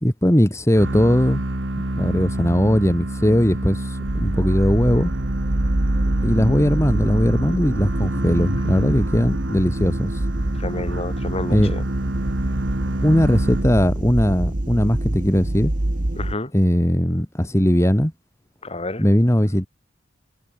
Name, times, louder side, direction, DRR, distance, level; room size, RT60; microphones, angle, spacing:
voice 1, 0.0-1.4 2.0-5.1 6.2-10.2 11.5-11.7 13.0-15.7 16.5-18.1 19.0-19.7, equal, 15° left, 2.6 m, -19 dB
sound 1, 0.7-14.1, right 1 dB, 70° right, 2.2 m, -27 dB
sound 2, 4.0-16.3, right 1 dB, 45° right, 1.4 m, -26 dB
voice 2, 10.6-11.8 16.2-16.5 18.6-19.0, left 2 dB, 35° left, 3.3 m, -29 dB
head